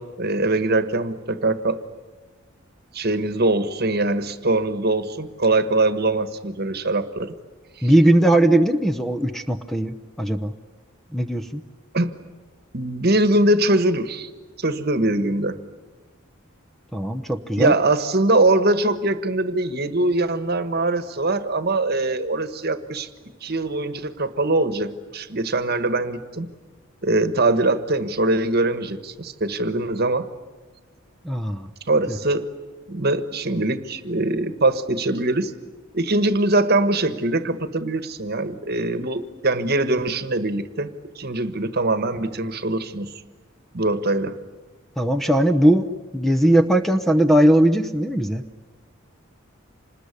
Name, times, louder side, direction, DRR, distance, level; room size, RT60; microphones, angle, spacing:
voice 1, 0.0-1.8 2.9-7.3 7.8-7.9 11.9-12.1 12.7-14.3 14.6-15.6 17.6-23.1 23.4-26.5 27.0-30.3 31.9-32.5 32.9-35.5 35.9-40.9 41.1-43.1 43.7-44.4, right 2 dB, 50° right, 12 dB, 1.4 m, -22 dB
voice 2, 7.8-10.5 11.1-11.6 16.9-17.7 31.2-31.7 32.1-32.2 45.0-45.9 46.1-48.4, right 1 dB, ahead, 8 dB, 0.9 m, -19 dB
27.0 x 20.5 x 9.8 m, 1.3 s
head